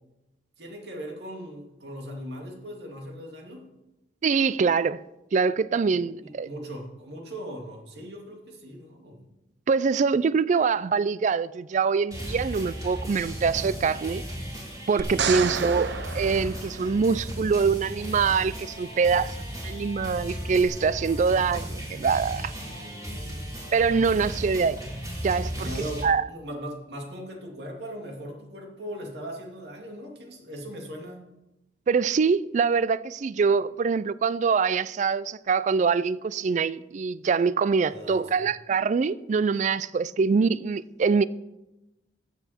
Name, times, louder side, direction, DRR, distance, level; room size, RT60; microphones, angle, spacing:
voice 1, 0.6-3.6 5.8-9.2 18.9-19.2 21.3-21.4 22.7-23.6 25.5-31.2 37.9-38.5, equal, 70° right, 2.4 m, -39 dB
voice 2, 4.2-5.0 5.3-6.5 9.7-14.2 14.9-19.3 19.6-22.5 23.7-24.8 25.2-25.7 26.0-26.2 31.9-41.2, right 5 dB, 45° right, 0.3 m, -24 dB
sound 1, 12.1-26.0, equal, 20° right, 3.4 m, -35 dB
sound 2, 15.0-17.3 20.6-20.7, right 6 dB, 85° right, 0.6 m, -31 dB
14.5 x 8.3 x 4.4 m
head